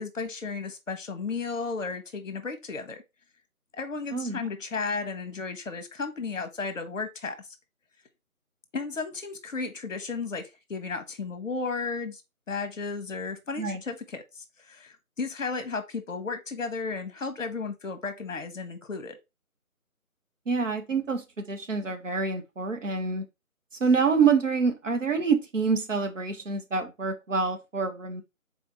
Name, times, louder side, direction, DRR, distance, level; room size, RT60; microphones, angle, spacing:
voice 1, 0.0-3.0 3.7-7.5 8.7-12.2 12.5-19.2, left 4 dB, 60° left, 1.0 m, -34 dB
voice 2, 20.5-23.2 23.8-28.2, right 5 dB, 60° right, 1.0 m, -26 dB
4.2 x 2.8 x 4.2 m
figure-of-eight pair, 160°, 43 cm